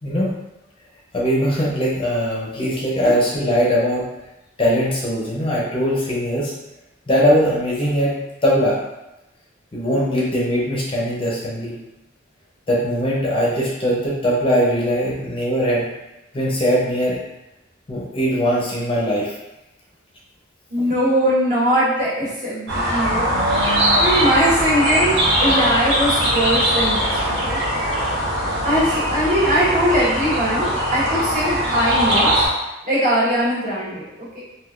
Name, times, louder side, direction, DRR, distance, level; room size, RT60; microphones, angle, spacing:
voice 1, 0.0-0.4 1.1-4.0 4.6-6.5 7.1-8.1 8.4-8.8 9.7-11.7 12.7-15.8 16.3-17.2 17.9-19.4, equal, 30° left, -5 dB, 0.6 m, -20 dB
voice 2, 20.7-27.1 27.4-27.6 28.6-32.4 32.8-34.4, equal, 45° right, -9 dB, 1.4 m, -21 dB
sound 1, 22.7-32.5, equal, 75° right, 0.8 m, -20 dB
3.5 x 2.5 x 2.4 m, 0.95 s
head